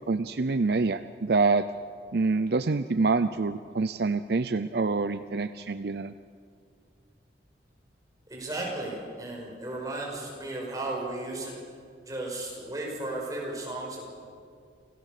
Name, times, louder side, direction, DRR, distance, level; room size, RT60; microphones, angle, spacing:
voice 1, 0.1-1.7 2.1-6.1, right 3 dB, 60° right, 12 dB, 0.5 m, -26 dB
voice 2, 8.3-11.6 12.1-14.0, right 2 dB, 20° right, -3 dB, 5.9 m, -35 dB
28.0 x 17.5 x 6.7 m, 2.3 s
head